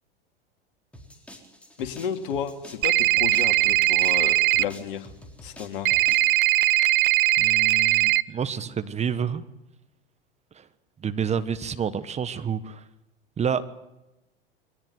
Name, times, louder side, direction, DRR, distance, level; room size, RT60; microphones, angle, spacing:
sound 1, 0.9-6.4, equal, 5° left, 4.2 m, -47 dB
voice 1, 1.8-5.1 5.4-5.9, left 8 dB, 65° left, 7 dB, 2.6 m, -32 dB
sound 2, 2.8-4.6 5.9-8.2, right 17 dB, 60° right, 0.8 m, -20 dB
voice 2, 7.4-9.4 10.5-10.6 11.0-12.8 13.4-13.6, right 7 dB, 20° right, 12 dB, 1.3 m, -29 dB
23.0 x 17.5 x 9.3 m, 0.98 s
figure-of-eight pair, 90°, 29 cm